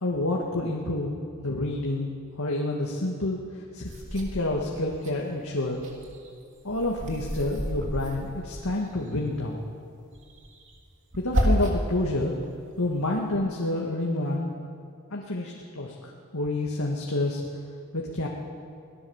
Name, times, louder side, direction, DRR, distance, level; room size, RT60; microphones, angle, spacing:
voice 1, 0.0-1.2 1.4-2.1 2.4-3.4 3.7-5.9 6.6-9.6 11.2-12.4 12.8-14.5 15.1-17.4 17.9-18.3, left 2 dB, 70° left, -1 dB, 2.1 m, -28 dB
sound 1, 3.8-5.1 5.5-9.1 10.1-12.0 12.4-13.3, equal, 60° right, 3.3 m, -31 dB
24.5 x 18.0 x 7.3 m, 2.4 s
head